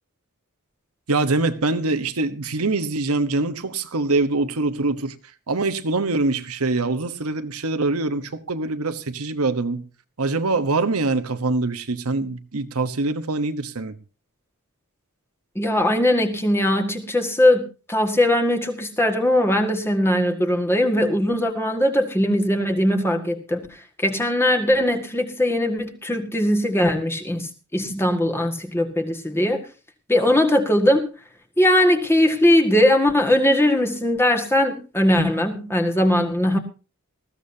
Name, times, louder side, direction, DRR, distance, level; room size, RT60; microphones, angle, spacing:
voice 1, 1.1-5.1 5.5-9.8 10.2-13.9, right 3 dB, 75° right, 1.1 m, -24 dB
voice 2, 15.6-23.7 24.0-29.6 30.1-31.0 31.6-36.6, left 1 dB, 10° left, 1.7 m, -20 dB
19.5 x 14.5 x 2.8 m
head